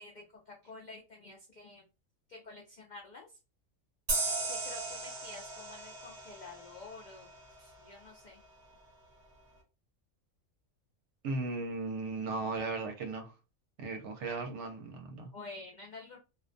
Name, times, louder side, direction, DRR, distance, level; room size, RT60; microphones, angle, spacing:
voice 1, 0.0-1.8 2.3-3.3 4.5-7.3 7.6-8.4 15.3-16.2, left 3 dB, 70° left, 0.4 m, -49 dB
sound 1, 4.1-7.4, right 3 dB, 40° right, 0.7 m, -36 dB
voice 2, 11.2-13.3 13.8-15.3, right 3 dB, 70° right, 0.9 m, -36 dB
2.3 x 2.1 x 2.5 m
omnidirectional pair, 1.4 m